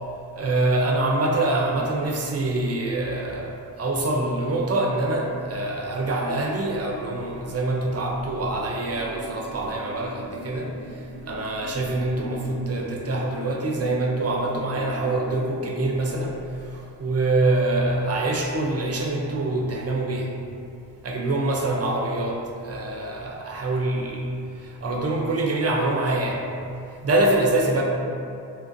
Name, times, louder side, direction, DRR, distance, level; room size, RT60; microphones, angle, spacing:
voice 1, 0.3-10.7 11.3-16.4 16.6-20.4 21.0-24.3 24.6-26.4 27.0-27.8, right 2 dB, 40° right, -1 dB, 0.5 m, -25 dB
sound 1, 8.8-15.4, left 1 dB, 70° left, 0.7 m, -41 dB
2.8 x 2.4 x 2.5 m, 2.5 s
cardioid pair, 45°, 41 cm